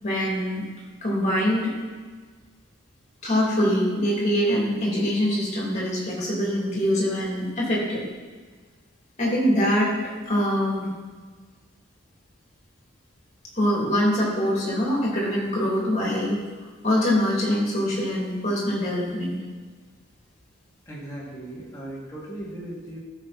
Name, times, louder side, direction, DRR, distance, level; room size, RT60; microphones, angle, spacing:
voice 1, 0.0-0.6 1.0-1.7 3.2-8.1 9.2-9.9 10.2-10.9 13.5-16.4 16.8-19.4, equal, 35° left, -4 dB, 3.1 m, -24 dB
voice 2, 20.9-23.0, right 1 dB, 15° left, -6 dB, 2.8 m, -37 dB
13.0 x 6.5 x 4.3 m, 1.5 s
head